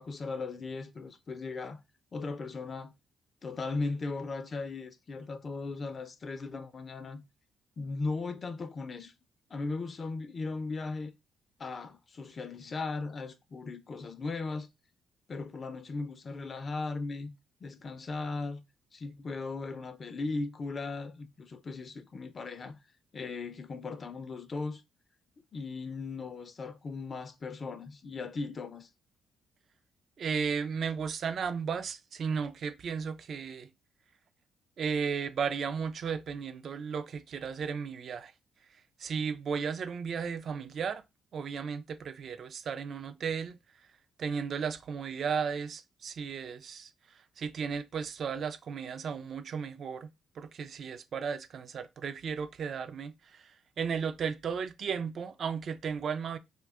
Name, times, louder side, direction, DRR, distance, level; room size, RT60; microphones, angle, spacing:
voice 1, 0.0-1.8 2.1-2.9 3.4-7.2 7.8-9.1 9.5-11.1 11.6-14.7 15.3-17.3 17.6-18.6 18.9-22.8 23.1-24.8 25.5-28.9, left 3 dB, 40° left, 0.4 m, -37 dB
voice 2, 30.2-33.7 34.8-38.3 39.0-41.0 41.3-43.6 44.2-46.9 47.4-50.1 50.4-56.4, right 6 dB, 55° right, 0.3 m, -34 dB
2.6 x 2.2 x 3.5 m
cardioid pair, 90°, 0 cm